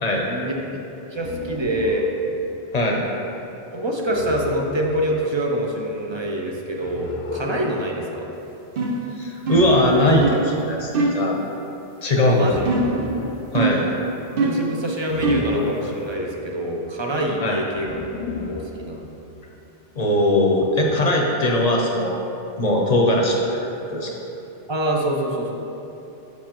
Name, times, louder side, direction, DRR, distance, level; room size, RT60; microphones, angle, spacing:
voice 1, 0.1-0.8 1.1-2.1 3.7-8.3 12.3-12.7 14.4-17.9 18.5-19.1 24.7-25.5, right 1 dB, 35° right, 0 dB, 0.5 m, -25 dB
sound 1, 1.1-2.1 4.1-5.0 6.8-7.8 9.4-10.5 12.4-13.4 15.0-16.1 17.7-18.7, left 4 dB, 75° left, 0.8 m, -33 dB
sound 2, 8.8-9.1 9.5-9.8 10.2-10.5 10.9-11.3 12.7-13.0 13.6-13.9 14.4-14.7 15.2-15.6, right 3 dB, 65° right, 0.9 m, -22 dB
voice 2, 9.2-11.4 12.0-12.5 13.5-13.8 17.4-17.6 20.0-24.1, left 1 dB, 45° left, 0 dB, 0.8 m, -20 dB
7.1 x 6.0 x 2.9 m, 2.9 s
omnidirectional pair, 1.0 m